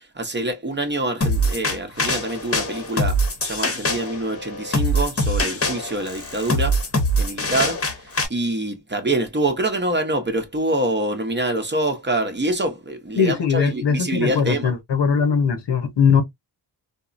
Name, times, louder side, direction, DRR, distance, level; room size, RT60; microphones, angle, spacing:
voice 1, 0.0-6.8 7.2-7.9 8.3-14.7, right 2 dB, 25° right, 0.7 m, -25 dB
sound 1, 1.2-8.3, equal, 30° left, 0.9 m, -23 dB
voice 2, 13.2-16.2, left 6 dB, 70° left, 1.0 m, -20 dB
3.5 x 2.0 x 2.5 m
wide cardioid pair, 95°, 43 cm